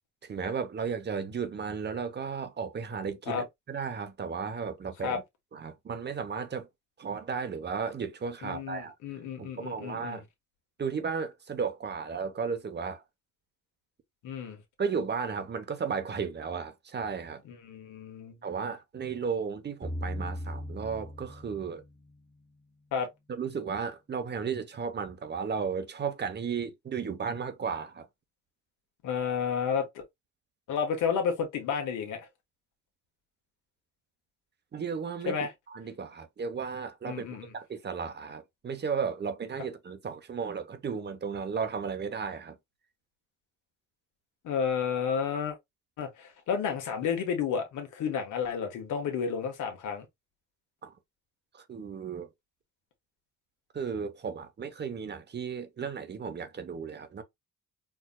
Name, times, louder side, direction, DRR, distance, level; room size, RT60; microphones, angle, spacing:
voice 1, 0.2-5.2 5.5-6.7 7.0-8.9 9.4-10.2 10.8-13.0 14.8-17.4 18.4-21.8 23.3-28.1 34.7-35.4 35.7-42.6 50.8-50.9 51.5-52.3 53.7-57.2, right 6 dB, 35° right, 0.8 m, -34 dB
voice 2, 8.4-10.2 14.2-14.6 17.4-18.4 22.9-23.1 29.0-29.9 30.7-32.3 35.3-35.5 37.1-37.5 44.4-45.6 46.0-50.0, left 6 dB, 80° left, 1.3 m, -31 dB
sound 1, 19.8-22.9, equal, 10° right, 1.1 m, -39 dB
4.6 x 2.7 x 2.2 m
cardioid pair, 90°, 30 cm